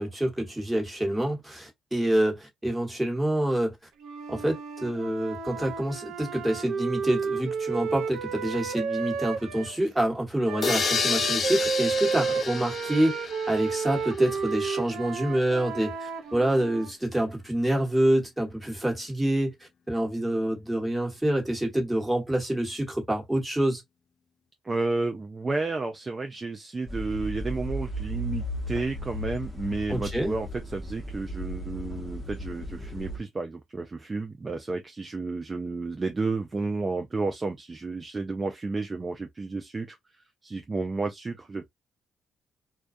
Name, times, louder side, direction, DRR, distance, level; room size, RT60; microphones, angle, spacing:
voice 1, 0.0-3.8 4.3-13.2 13.5-19.5 19.9-23.8 29.9-30.3, right 1 dB, 5° right, 1.3 m, -27 dB
Wind instrument woodwind instrument, 4.0-9.8 10.4-16.9, right 5 dB, 80° right, 0.6 m, -32 dB
sound 1, 10.6-14.4, left 5 dB, 45° left, 0.3 m, -30 dB
voice 2, 24.6-41.7, right 3 dB, 25° right, 0.4 m, -32 dB
sound 2, 26.9-33.2, left 1 dB, 20° left, 1.0 m, -35 dB
2.2 x 2.2 x 2.5 m
cardioid pair, 90°, 0 cm